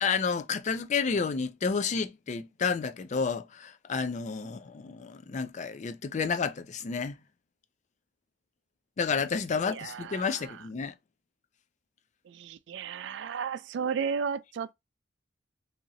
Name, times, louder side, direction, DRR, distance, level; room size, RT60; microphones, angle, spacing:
voice 1, 0.0-7.2 9.0-10.9, left 5 dB, 40° left, 0.4 m, -30 dB
voice 2, 9.6-10.3 12.3-14.7, right 6 dB, 70° right, 0.3 m, -34 dB
2.9 x 2.7 x 2.5 m
head